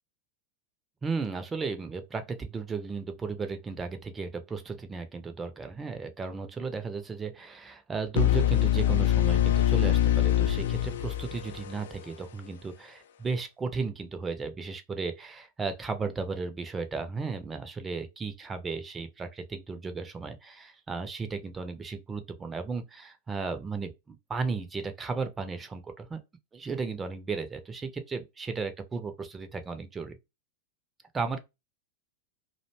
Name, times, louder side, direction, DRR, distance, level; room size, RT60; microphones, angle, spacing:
voice 1, 1.0-26.2 26.5-30.2 31.1-31.4, right 4 dB, 15° right, 0.5 m, -35 dB
sound 1, 8.2-12.0, left 12 dB, 60° left, 0.3 m, -24 dB
2.5 x 2.1 x 3.0 m
figure-of-eight pair, 90°, 0 cm